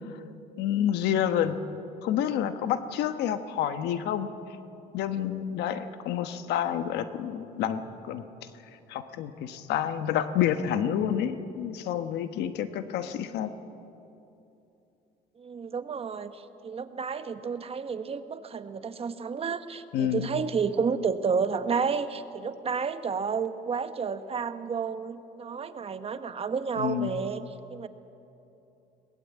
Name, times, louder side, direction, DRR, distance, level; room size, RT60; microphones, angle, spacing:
voice 1, 0.6-1.6 2.0-4.3 4.9-8.2 8.9-13.5 19.9-20.3 26.8-27.1, left 10 dB, 80° left, 10 dB, 1.2 m, -28 dB
voice 2, 15.4-27.9, right 5 dB, 35° right, 10 dB, 1.1 m, -31 dB
21.5 x 18.5 x 8.4 m, 2.9 s
cardioid pair, 110°, 17 cm